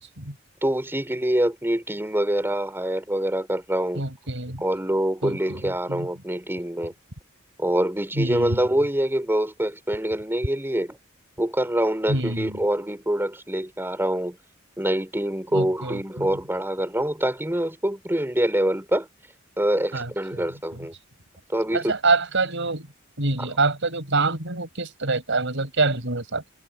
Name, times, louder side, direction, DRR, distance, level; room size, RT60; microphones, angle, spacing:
voice 1, 0.6-4.0 4.6-6.9 7.6-11.0 11.4-14.4 14.8-19.1 19.6-20.9 21.5-21.9 23.4-23.5, right 1 dB, 10° right, 4.6 m, -25 dB
voice 2, 4.0-4.6 5.2-5.4 5.9-6.1 8.2-8.6 12.1-12.6 15.5-16.3 19.9-20.5 21.7-22.9 23.2-26.5, right 3 dB, 65° right, 6.0 m, -25 dB
head